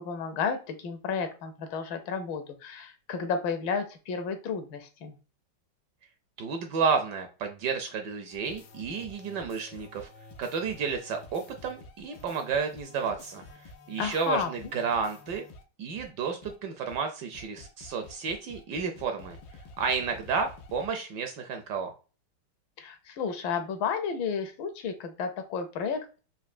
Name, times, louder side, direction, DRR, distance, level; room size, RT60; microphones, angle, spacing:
voice 1, 0.0-5.2 14.0-14.5 22.8-26.2, left 6 dB, 75° left, 8 dB, 1.4 m, -32 dB
voice 2, 6.4-10.1 10.4-15.5 15.8-19.4 19.8-21.9, right 5 dB, 70° right, 6 dB, 1.1 m, -31 dB
sound 1, 8.3-15.6 16.0-16.1 16.4-16.5 16.9-17.0 17.3-20.9, left 2 dB, 90° left, 1.5 m, -49 dB
4.3 x 2.6 x 2.3 m, 0.34 s
omnidirectional pair, 2.2 m